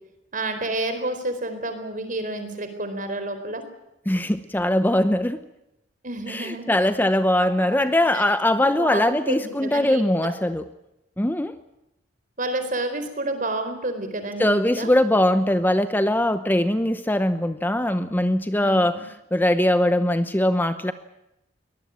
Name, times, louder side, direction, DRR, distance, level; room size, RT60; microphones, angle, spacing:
voice 1, 0.3-3.6 6.0-6.7 7.8-8.2 8.6-10.3 12.4-14.9 18.6-19.0, right 2 dB, 45° right, 8 dB, 4.3 m, -30 dB
voice 2, 4.1-5.4 6.3-10.6 11.2-11.5 14.4-19.0 19.3-20.9, left 1 dB, 10° left, 11 dB, 0.8 m, -21 dB
23.0 x 19.5 x 8.8 m, 0.88 s
head